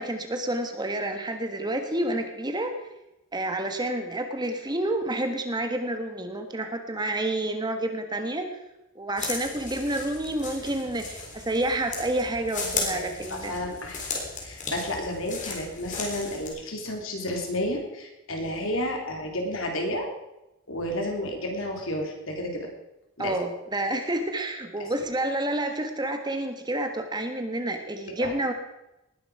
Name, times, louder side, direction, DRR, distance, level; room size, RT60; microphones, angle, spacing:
voice 1, 0.0-2.7 3.3-8.5 8.9-13.5 23.2-28.5, right 1 dB, 20° right, 6 dB, 1.5 m, -29 dB
sound 1, 9.2-16.5, left 4 dB, 35° left, 3.7 m, -35 dB
voice 2, 12.5-13.0 13.3-14.0 14.4-20.1 20.7-22.7 23.2-23.4 28.2-28.3, left 1 dB, 65° left, 2 dB, 3.4 m, -31 dB
19.5 x 11.0 x 4.9 m, 0.94 s
head